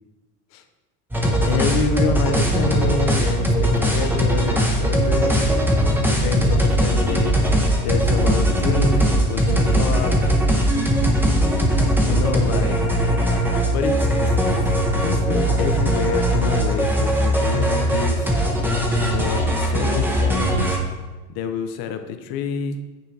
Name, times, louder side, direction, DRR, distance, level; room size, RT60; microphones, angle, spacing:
sound 1, 1.1-20.8, equal, 5° right, 0.7 m, -20 dB
voice 1, 1.5-5.5 6.0-7.4 7.8-10.2 12.1-12.8 13.7-14.6 14.9-18.3 19.0-20.8 21.3-22.8, left 6 dB, 60° left, 7 dB, 0.7 m, -27 dB
9.3 x 3.8 x 3.2 m, 1.2 s
cardioid pair, 135°, 41 cm